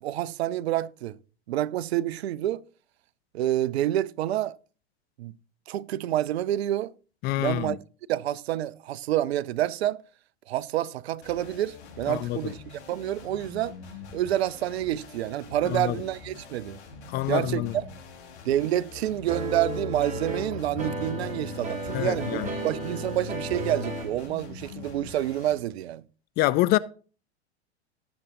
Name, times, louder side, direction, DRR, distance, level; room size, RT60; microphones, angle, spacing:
voice 1, 0.0-1.2 1.5-2.6 3.3-4.6 5.2-5.3 5.7-6.9 7.4-7.8 8.1-10.0 10.5-12.6 12.9-13.8 14.1-16.8 17.3-17.9 18.4-26.0, right 13 dB, 65° right, 0.6 m, -28 dB
voice 2, 7.2-7.8 12.1-12.4 15.7-16.0 17.1-17.7 21.9-22.5 26.4-26.8, left 16 dB, 30° left, 0.4 m, -26 dB
sound 1, 11.2-25.5, left 4 dB, 75° left, 4.4 m, -45 dB
sound 2, 19.3-24.2, equal, 20° right, 2.8 m, -33 dB
18.5 x 7.0 x 2.7 m
hypercardioid pair, 100°, 34 cm